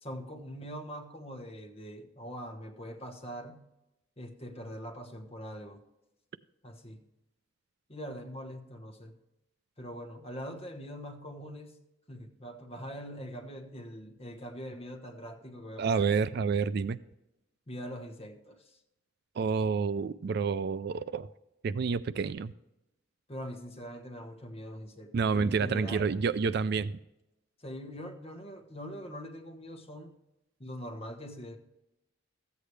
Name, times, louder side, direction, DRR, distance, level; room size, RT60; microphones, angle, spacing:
voice 1, 0.0-3.6 4.2-5.8 6.6-7.0 7.9-9.2 9.8-11.8 12.1-16.2 17.7-18.8 23.3-26.2 27.6-30.1 30.6-31.6, equal, 30° left, 1.3 m, -43 dB
voice 2, 15.8-17.0 19.4-21.3 21.6-22.5 25.1-26.9, right 5 dB, 50° right, 0.3 m, -29 dB
14.5 x 8.4 x 3.3 m
head